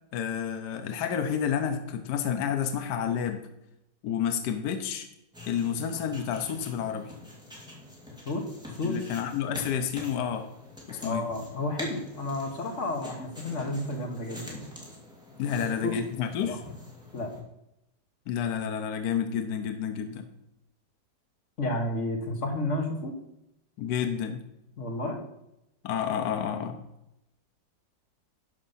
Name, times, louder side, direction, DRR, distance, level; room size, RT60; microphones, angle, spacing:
voice 1, 0.1-3.5 4.0-5.1 5.5-7.1 8.8-10.5 10.9-11.3 15.4-16.6 18.3-20.3 23.8-24.4 25.8-26.8, left 8 dB, 70° left, 7 dB, 1.3 m, -30 dB
sound 1, 5.3-17.4, left 1 dB, ahead, 2.1 m, -45 dB
voice 2, 11.0-14.7 15.5-16.0 16.4-16.6 17.1-17.3 21.6-23.1 24.8-25.2, left 2 dB, 45° left, 3 dB, 1.7 m, -31 dB
12.0 x 5.0 x 5.6 m, 0.86 s
omnidirectional pair, 1.9 m